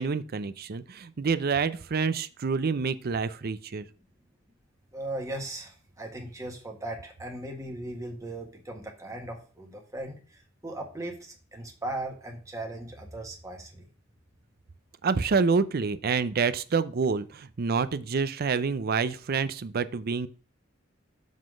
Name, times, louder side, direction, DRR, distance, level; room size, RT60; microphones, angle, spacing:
voice 1, 0.0-3.9 15.0-20.3, right 5 dB, 50° right, 14 dB, 0.5 m, -27 dB
voice 2, 4.9-13.9, right 1 dB, 15° right, 1 dB, 1.6 m, -38 dB
7.3 x 3.9 x 6.2 m, 0.39 s
head